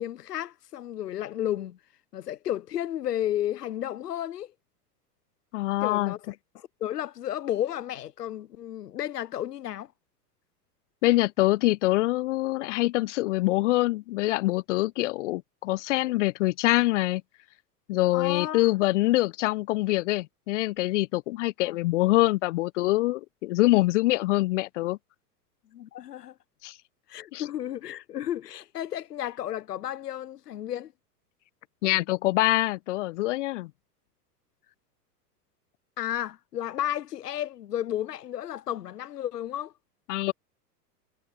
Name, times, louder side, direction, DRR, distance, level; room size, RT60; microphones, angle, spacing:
voice 1, 0.0-1.8 2.1-4.5 5.8-9.9 18.1-18.7 21.6-21.8 25.7-26.4 27.1-30.9 36.0-39.7, left 11 dB, 75° left, 0.9 m, -33 dB
voice 2, 5.5-6.1 11.0-17.2 17.9-25.0 26.6-26.8 27.3-27.4 31.8-33.7 40.1-40.3, left 19 dB, 50° left, 0.7 m, -25 dB
figure-of-eight pair, 95°, 49 cm